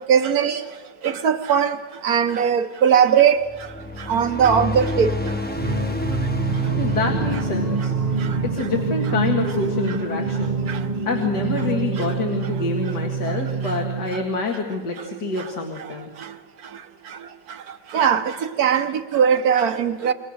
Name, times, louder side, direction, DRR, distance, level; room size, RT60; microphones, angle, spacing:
voice 1, 0.1-0.6 1.0-1.7 2.0-3.4 4.1-5.1 17.9-18.2 18.6-20.1, right 7 dB, 60° right, 1.5 m, -18 dB
sound 1, 3.4-10.0, left 2 dB, 5° left, 1.0 m, -30 dB
Singing, 5.5-14.5, right 4 dB, 35° right, 0.6 m, -26 dB
voice 2, 6.7-8.2 8.4-10.6 11.1-16.1, left 3 dB, 70° left, 2.6 m, -27 dB
28.0 x 22.5 x 6.5 m
omnidirectional pair, 1.9 m